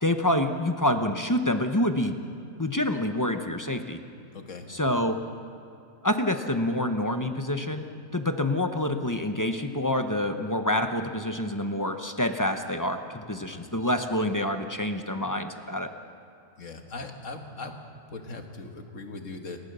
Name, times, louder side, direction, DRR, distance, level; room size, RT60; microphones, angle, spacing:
voice 1, 0.0-2.2 2.6-4.0 4.7-5.2 6.0-7.9 8.1-15.9, left 1 dB, 15° left, 7 dB, 0.8 m, -27 dB
voice 2, 4.3-4.7 13.4-13.6 16.6-17.8 18.1-19.6, left 3 dB, 70° left, 4 dB, 1.9 m, -39 dB
29.5 x 13.5 x 6.8 m, 2.6 s
omnidirectional pair, 1.4 m